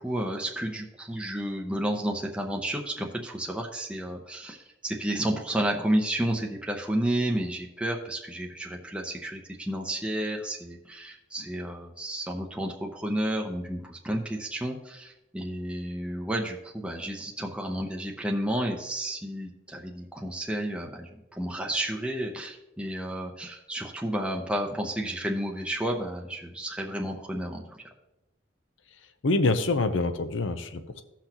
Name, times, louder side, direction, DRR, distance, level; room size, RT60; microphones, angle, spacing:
voice 1, 0.0-27.8, right 1 dB, 5° right, 0 dB, 0.7 m, -31 dB
voice 2, 29.2-31.0, left 3 dB, 80° left, 9 dB, 0.7 m, -26 dB
16.5 x 5.9 x 2.9 m, 0.94 s
head